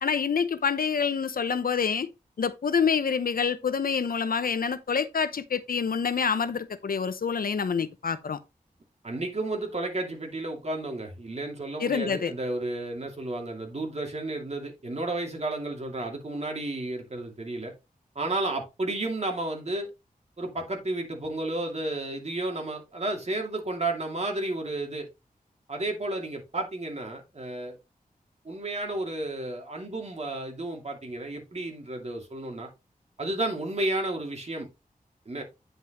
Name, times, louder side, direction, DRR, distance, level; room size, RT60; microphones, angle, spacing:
voice 1, 0.0-2.1 2.4-8.4 11.8-12.3, left 6 dB, 75° left, 0.8 m, -27 dB
voice 2, 9.0-17.7 18.1-19.9 20.4-25.1 25.7-27.8 28.4-32.7 33.2-34.7 35.3-35.4, right 2 dB, 45° right, 2.6 m, -32 dB
9.4 x 5.4 x 3.0 m
wide cardioid pair, 80°, 15 cm